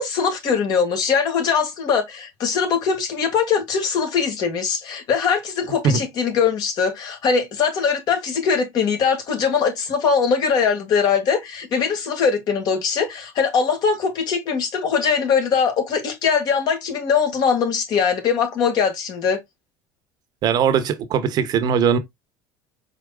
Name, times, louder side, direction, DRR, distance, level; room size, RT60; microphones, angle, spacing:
voice 1, 0.0-19.4, left 6 dB, 55° left, 2.0 m, -21 dB
voice 2, 20.4-22.0, right 7 dB, 50° right, 1.0 m, -19 dB
4.8 x 4.4 x 2.4 m
supercardioid pair, 100°, 9 cm